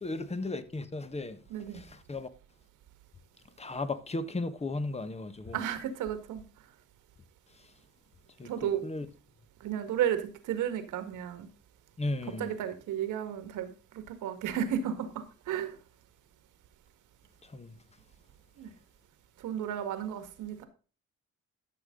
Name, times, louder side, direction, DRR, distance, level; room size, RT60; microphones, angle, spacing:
voice 1, 0.0-1.4 1.7-2.3 3.6-5.6 8.4-9.1 12.0-12.5 17.4-17.7, left 2 dB, 20° left, 1.3 m, -35 dB
voice 2, 1.5-1.8 5.5-6.4 8.4-8.8 9.6-11.5 12.4-15.8 18.6-18.7 19.4-20.7, right 9 dB, 85° right, 1.9 m, -33 dB
13.5 x 6.8 x 3.9 m
cardioid pair, 90°, 30 cm